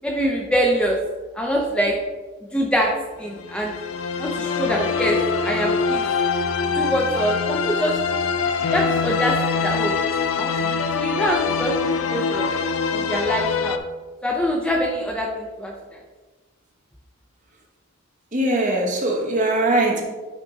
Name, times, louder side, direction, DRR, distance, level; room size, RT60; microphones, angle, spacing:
voice 1, 0.0-1.0 1.3-2.0 2.5-2.9 3.2-3.7 4.2-6.0 6.7-8.0 8.7-9.9 10.4-11.8 12.1-12.5 12.9-13.8 14.2-16.0, equal, 5° left, 0 dB, 0.5 m, -24 dB
sound 1, 3.3-13.8, left 5 dB, 65° left, 0.5 m, -24 dB
voice 2, 18.3-20.0, right 1 dB, 35° right, 0 dB, 1.3 m, -21 dB
10.0 x 3.6 x 3.9 m, 1.3 s
head